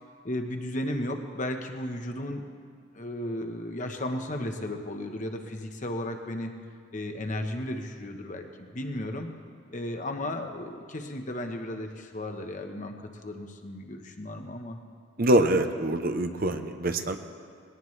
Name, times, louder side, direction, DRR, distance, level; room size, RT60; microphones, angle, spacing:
voice 1, 0.2-2.6 2.9-6.5 6.9-9.3 9.7-12.9 13.2-14.8, left 1 dB, 40° left, 4 dB, 1.1 m, -34 dB
voice 2, 15.2-17.2, right 1 dB, 45° right, 7 dB, 0.7 m, -24 dB
19.5 x 18.0 x 3.3 m, 2.2 s
head